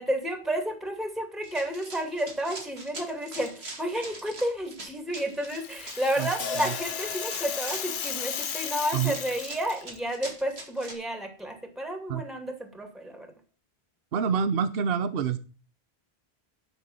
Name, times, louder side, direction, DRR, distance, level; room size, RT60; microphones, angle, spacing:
voice 1, 0.0-13.3, equal, ahead, 5 dB, 2.4 m, -31 dB
Run, 1.4-10.9, right 2 dB, 80° right, 2.9 m, -43 dB
Rattle (instrument), 5.2-10.0, left 8 dB, 55° left, 0.8 m, -35 dB
voice 2, 6.2-6.7 8.9-9.2 12.1-12.2 14.1-15.4, right 7 dB, 65° right, 12 dB, 1.0 m, -27 dB
sound 1, 6.4-10.7, left 5 dB, 75° left, 1.3 m, -41 dB
10.5 x 6.5 x 7.3 m, 0.37 s
omnidirectional pair, 1.1 m